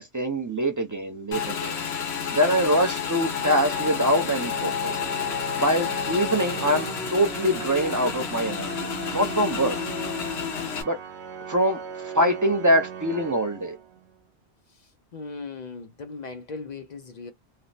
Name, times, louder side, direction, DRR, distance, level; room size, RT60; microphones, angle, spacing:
voice 1, 0.0-1.8 2.3-5.0 5.6-9.8 10.8-11.0 11.5-13.8, equal, 30° right, 0.3 m, -24 dB
Motorcycle / Engine, 1.3-10.8, left 7 dB, 70° left, 1.0 m, -30 dB
Organ, 3.2-14.2, right 7 dB, 85° right, 0.9 m, -38 dB
voice 2, 14.7-17.3, left 4 dB, 55° left, 0.5 m, -38 dB
3.3 x 2.0 x 2.6 m
omnidirectional pair, 1.1 m